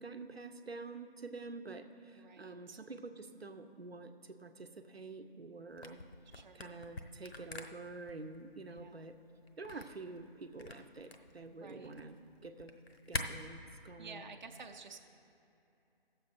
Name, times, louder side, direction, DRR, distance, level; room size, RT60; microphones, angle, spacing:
voice 1, 0.0-6.0 6.5-9.2 9.6-12.2 12.4-12.7 13.1-14.3, right 3 dB, 85° right, 7 dB, 0.8 m, -48 dB
voice 2, 2.1-2.8 6.3-6.8 8.7-9.0 11.5-11.9 14.0-15.0, right 4 dB, 50° right, 4 dB, 0.7 m, -52 dB
Camera, 5.7-13.2, left 3 dB, 85° left, 0.9 m, -46 dB
15.5 x 7.2 x 4.3 m, 2.9 s
figure-of-eight pair, 160°, 30 cm